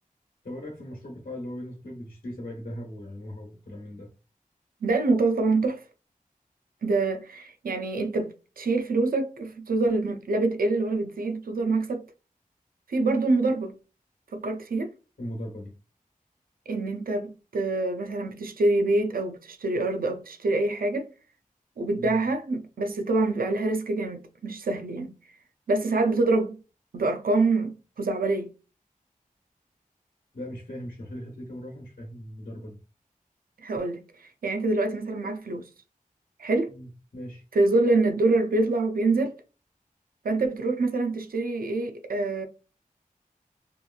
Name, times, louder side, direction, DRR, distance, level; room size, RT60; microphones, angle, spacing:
voice 1, 0.4-4.1 15.2-15.7 22.0-22.2 30.3-32.8 36.7-37.4, equal, 90° left, 1.0 m, -39 dB
voice 2, 4.8-5.8 6.8-12.1 12.9-13.8 14.3-14.9 16.7-21.1 21.8-25.2 25.7-26.6 26.9-28.5 33.6-35.7 36.4-36.7 37.5-39.3 40.2-42.5, right 2 dB, 85° right, 0.4 m, -25 dB
2.9 x 2.3 x 2.3 m
wide cardioid pair, 55°, 15 cm